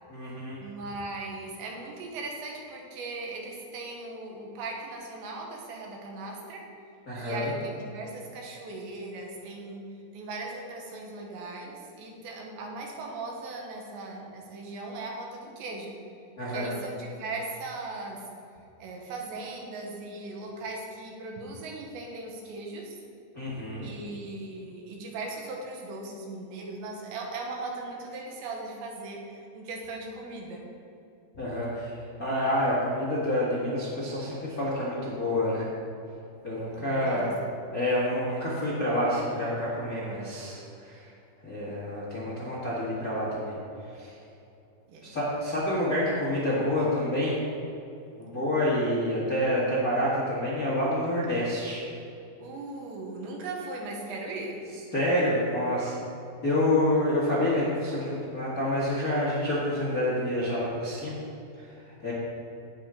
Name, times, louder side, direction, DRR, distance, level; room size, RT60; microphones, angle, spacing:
voice 1, 0.1-0.6 7.1-7.5 16.4-16.7 23.3-23.9 31.3-35.7 36.4-37.4 37.7-41.1 41.4-43.5 44.0-44.1 45.0-47.3 48.2-51.8 54.9-55.9 56.4-61.2 61.6-61.7 62.0-62.1, left 1 dB, 80° left, -8 dB, 0.8 m, -28 dB
voice 2, 0.6-6.6 7.2-9.8 10.1-15.9 16.5-18.2 18.8-23.0 23.8-30.6 36.7-37.3 44.9-45.1 52.4-54.6, right 2 dB, 75° right, -1 dB, 3.5 m, -38 dB
17.0 x 6.3 x 3.8 m, 2.7 s
omnidirectional pair, 5.3 m